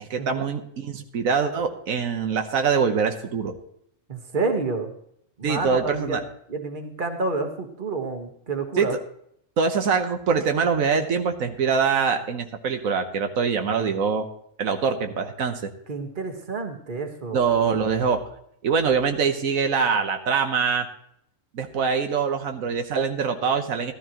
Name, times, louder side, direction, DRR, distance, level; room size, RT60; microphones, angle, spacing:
voice 1, 0.0-3.6 5.4-6.2 8.8-8.9 9.6-14.3 14.6-15.7 17.3-18.2 18.6-20.9 21.5-23.9, right 5 dB, 90° right, 6 dB, 1.5 m, -24 dB
voice 2, 4.1-4.9 5.4-8.9 15.9-17.4, right 3 dB, 40° right, 5 dB, 1.6 m, -29 dB
13.5 x 13.5 x 3.0 m, 0.70 s
omnidirectional pair, 1.4 m